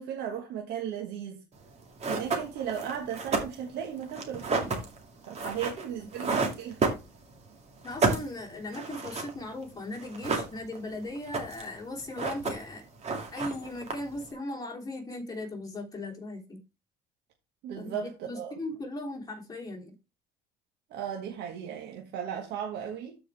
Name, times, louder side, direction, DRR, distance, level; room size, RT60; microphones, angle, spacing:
voice 1, 0.0-1.4 2.1-4.7 5.3-6.8 17.6-18.5 20.9-23.2, right 8 dB, 85° right, 1.4 m, -36 dB
sound 1, 1.6-1.7 2.0-7.5 7.8-9.6 9.9-10.9 11.2-11.8 12.0-12.8 13.0-14.3, right 4 dB, 40° right, 2.3 m, -31 dB
voice 2, 7.8-12.8 13.3-16.6 17.8-17.9 18.3-19.9, left 2 dB, 20° left, 3.1 m, -38 dB
13.0 x 4.9 x 3.4 m
cardioid pair, 110°, 17 cm